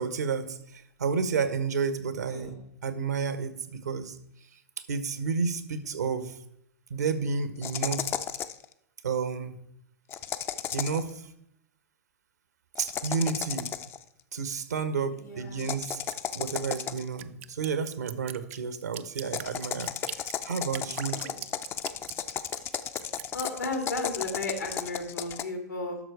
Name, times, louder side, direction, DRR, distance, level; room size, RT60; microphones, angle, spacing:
voice 1, 0.0-2.5 2.8-4.2 4.9-6.4 6.9-8.1 9.0-9.5 10.7-11.2 12.8-13.7 14.3-16.0 16.3-19.9 20.2-21.2, right 5 dB, 75° right, 12 dB, 1.2 m, -31 dB
voice 2, 2.2-2.6 15.1-15.7 21.1-21.4 23.3-26.0, left 2 dB, 85° left, 3 dB, 2.5 m, -34 dB
sound 1, 7.6-8.7 10.1-11.1 12.8-14.0 15.6-17.2 19.2-25.4, left 9 dB, 25° left, 0.5 m, -34 dB
Drip, 15.9-23.5, right 14 dB, 50° right, 0.5 m, -42 dB
11.5 x 6.4 x 4.7 m, 0.77 s
figure-of-eight pair, 105°, 9 cm